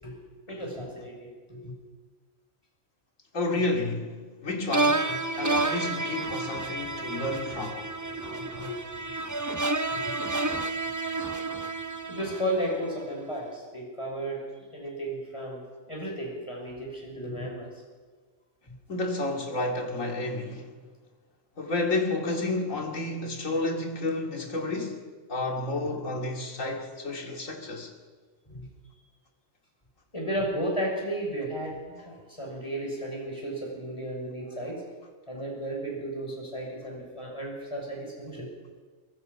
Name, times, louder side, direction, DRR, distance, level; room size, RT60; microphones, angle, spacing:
voice 1, 0.0-1.7 5.3-5.4 6.7-7.4 7.7-8.8 9.9-10.1 12.1-14.4 14.7-15.6 15.9-17.7 28.5-28.7 30.1-34.9 35.3-38.4, right 1 dB, 25° left, 6.7 m, -34 dB
voice 2, 3.3-4.2 4.4-7.8 18.9-20.7 21.6-27.9, left 2 dB, 85° left, 2.9 m, -31 dB
sound 1, 4.7-12.9, right 2 dB, 15° right, 0.8 m, -30 dB
23.5 x 22.0 x 5.7 m
omnidirectional pair, 1.3 m